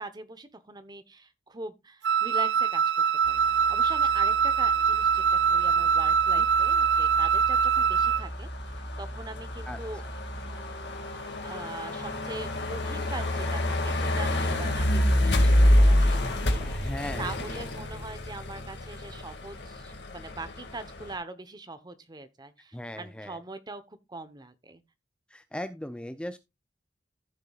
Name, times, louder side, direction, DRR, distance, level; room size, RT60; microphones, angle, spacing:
voice 1, 0.0-2.8 3.3-3.4 3.7-8.5 9.0-10.0 11.4-24.8, right 2 dB, 25° right, 0.9 m, -42 dB
Wind instrument woodwind instrument, 2.0-8.3, right 7 dB, 80° right, 0.5 m, -23 dB
sound 1, 3.3-21.1, left 1 dB, 70° left, 2.1 m, -28 dB
voice 2, 16.6-17.3 22.7-23.4 25.3-26.4, left 1 dB, 5° left, 0.5 m, -38 dB
14.5 x 6.7 x 2.4 m
head